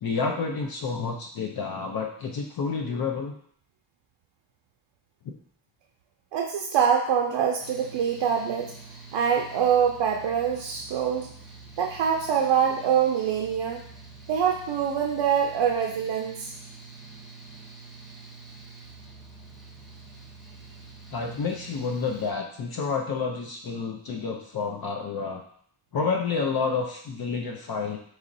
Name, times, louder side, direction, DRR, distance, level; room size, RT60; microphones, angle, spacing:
voice 1, 0.0-3.3 21.1-25.4 25.9-28.0, left 5 dB, 50° left, 1 dB, 0.5 m, -29 dB
voice 2, 6.3-8.7 9.1-11.3 11.8-13.8 14.3-16.5, right 7 dB, 70° right, 1 dB, 0.5 m, -24 dB
Mechanical fan, 7.6-22.3, right 4 dB, ahead, 0.8 m, -46 dB
4.1 x 3.0 x 2.6 m, 0.62 s
cardioid pair, 90°, 46 cm